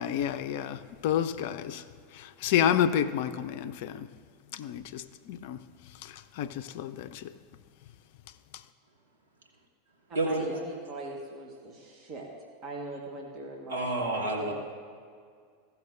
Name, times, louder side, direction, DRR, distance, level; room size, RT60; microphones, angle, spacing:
voice 1, 0.0-1.8 2.1-4.1 4.5-5.6 6.0-7.3, left 9 dB, 55° left, 11 dB, 0.4 m, -30 dB
voice 2, 10.1-12.3 12.6-14.5, right 2 dB, 40° right, -1 dB, 1.4 m, -40 dB
voice 3, 13.7-14.5, right 2 dB, 75° right, 0 dB, 1.3 m, -29 dB
14.5 x 5.9 x 3.9 m, 2.1 s
figure-of-eight pair, 85°, 0 cm